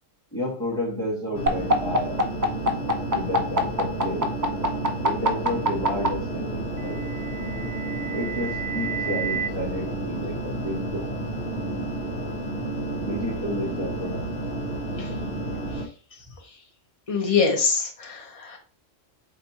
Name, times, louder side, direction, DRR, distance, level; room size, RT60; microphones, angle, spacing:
voice 1, 0.3-2.2 3.1-4.3 5.0-7.0 8.1-11.1 13.0-14.2, left 1 dB, 5° left, -4 dB, 1.8 m, -31 dB
sound 1, 1.3-15.8, right 1 dB, 60° left, 1.3 m, -31 dB
sound 2, 1.5-6.1 7.2-9.5, right 2 dB, 30° right, 0.3 m, -25 dB
voice 2, 15.7-16.6 17.1-18.6, left 5 dB, 30° left, 2 dB, 1.0 m, -26 dB
4.1 x 2.7 x 4.2 m, 0.38 s
omnidirectional pair, 1.2 m